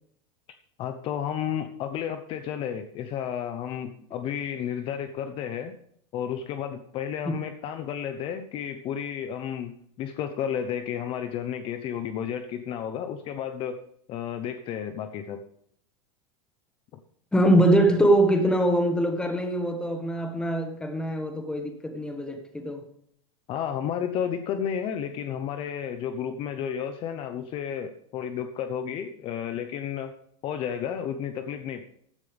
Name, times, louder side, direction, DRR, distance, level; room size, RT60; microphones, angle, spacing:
voice 1, 0.8-5.7 6.1-13.8 14.1-15.4 23.5-30.1 30.4-31.8, left 8 dB, 35° left, 0.8 m, -32 dB
voice 2, 17.3-22.8, right 1 dB, 5° left, 1.5 m, -23 dB
15.0 x 10.5 x 3.5 m
supercardioid pair, 160°, 16 cm